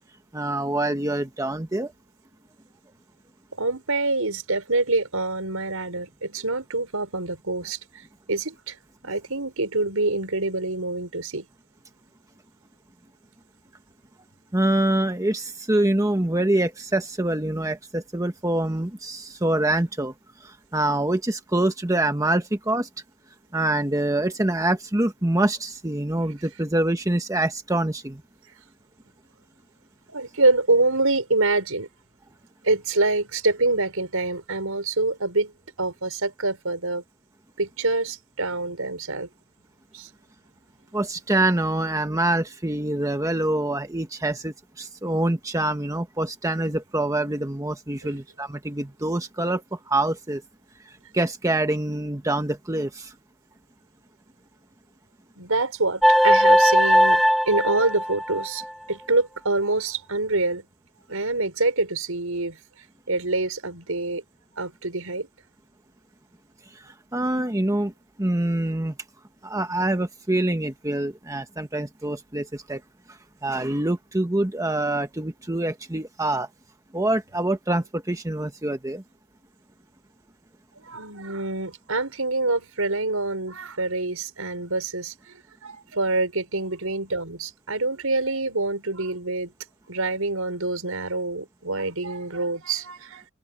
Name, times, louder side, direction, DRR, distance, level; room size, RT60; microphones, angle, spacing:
voice 1, 0.3-1.9 14.5-20.1 20.4-22.9 23.5-28.2 40.9-50.4 51.1-53.1 67.1-67.9 68.2-68.9 69.4-72.8 73.4-76.5 76.9-79.0, right 1 dB, 15° right, 1.2 m, -25 dB
voice 2, 3.6-7.8 8.3-8.8 9.0-11.5 30.1-31.9 32.6-35.5 35.8-37.0 37.6-39.3 39.9-40.1 48.0-48.2 55.4-57.2 57.5-58.6 58.9-60.6 61.1-62.6 63.1-64.2 64.6-65.3 80.8-89.5 89.9-93.3, right 2 dB, 75° right, 5.5 m, -26 dB
sound 1, 56.0-58.6, equal, ahead, 3.5 m, -18 dB
head